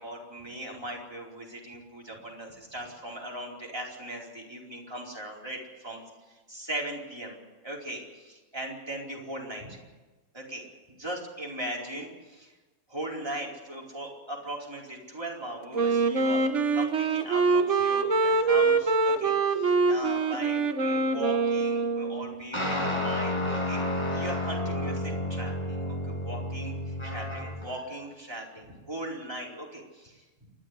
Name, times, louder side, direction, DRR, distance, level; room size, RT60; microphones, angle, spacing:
voice 1, 0.0-6.0 6.5-7.4 7.6-9.8 10.3-10.6 11.0-12.5 12.9-16.4 16.7-23.9 24.1-30.2, right 1 dB, 15° right, -2 dB, 4.6 m, -39 dB
Wind instrument woodwind instrument, 15.7-22.4, right 4 dB, 55° right, 1.7 m, -24 dB
sound 1, 22.5-27.7, left 1 dB, 20° left, 7.6 m, -31 dB
28.0 x 11.5 x 9.7 m, 1.2 s
omnidirectional pair, 1.5 m